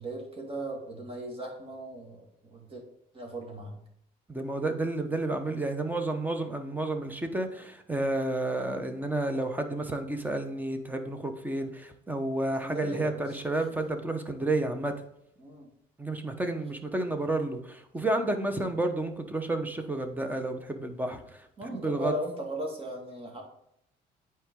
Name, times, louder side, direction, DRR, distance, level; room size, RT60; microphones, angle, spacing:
voice 1, 0.0-2.8 3.1-3.8 12.6-13.4 15.4-15.7 21.6-23.4, right 1 dB, 35° right, 1 dB, 2.1 m, -37 dB
voice 2, 4.3-14.9 16.0-22.1, right 2 dB, 10° right, 7 dB, 0.9 m, -31 dB
9.0 x 4.6 x 3.7 m, 0.75 s
cardioid pair, 110°, 17 cm